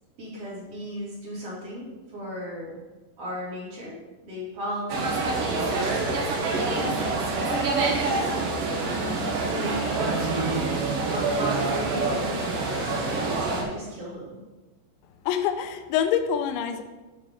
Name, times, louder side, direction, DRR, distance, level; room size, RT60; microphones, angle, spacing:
voice 1, 0.2-2.7 3.2-4.0 4.2-8.2 8.5-10.7 11.0-14.3, equal, 35° right, -6 dB, 3.2 m, -36 dB
sound 1, 4.9-13.6, right 3 dB, 65° right, 2.5 m, -26 dB
voice 2, 15.3-16.8, left 9 dB, 85° left, 7 dB, 3.0 m, -26 dB
9.3 x 4.4 x 6.3 m, 1.2 s
omnidirectional pair, 5.3 m